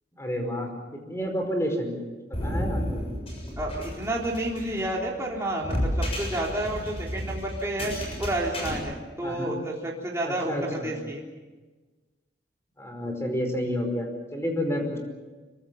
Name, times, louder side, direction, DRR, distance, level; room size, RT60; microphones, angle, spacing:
voice 1, 0.2-2.0 2.3-3.0 9.2-9.5 10.2-10.9 12.8-15.0, equal, 15° left, 3 dB, 5.1 m, -30 dB
sound 1, 2.3-8.8, equal, 30° left, 7.1 m, -32 dB
voice 2, 3.6-7.9 8.2-11.2, right 1 dB, 15° right, -3 dB, 3.8 m, -30 dB
26.0 x 24.0 x 7.2 m, 1.3 s
head